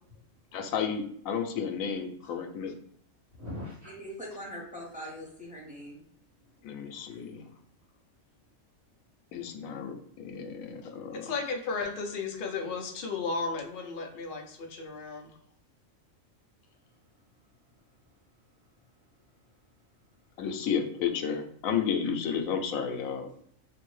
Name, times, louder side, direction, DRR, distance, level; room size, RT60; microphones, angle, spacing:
voice 1, 0.5-2.7 6.6-7.4 9.3-11.3 20.4-23.3, left 7 dB, 80° left, 5 dB, 1.0 m, -32 dB
voice 2, 3.3-3.9 6.4-7.3 16.7-20.4, left 1 dB, 45° right, -8 dB, 1.4 m, -49 dB
voice 3, 3.8-6.1 7.3-7.5, equal, 10° right, -4 dB, 0.5 m, -42 dB
voice 4, 11.2-15.3, left 4 dB, 55° left, 3 dB, 0.6 m, -34 dB
2.8 x 2.6 x 3.1 m, 0.65 s
omnidirectional pair, 1.4 m